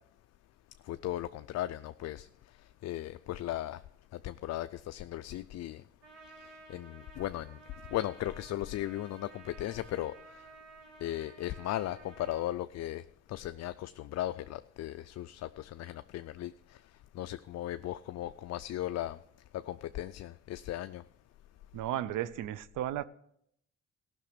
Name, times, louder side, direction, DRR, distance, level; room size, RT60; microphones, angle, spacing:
voice 1, 0.8-2.3 2.8-3.8 4.1-5.8 6.4-7.6 7.9-10.5 11.0-16.8 17.1-19.2 19.5-21.0, left 13 dB, 60° left, 0.4 m, -37 dB
Trumpet, 6.0-12.5, right 3 dB, 60° right, 4.8 m, -54 dB
voice 2, 21.7-23.0, right 12 dB, 85° right, 0.6 m, -34 dB
15.0 x 6.1 x 6.7 m
cardioid pair, 90°, 30 cm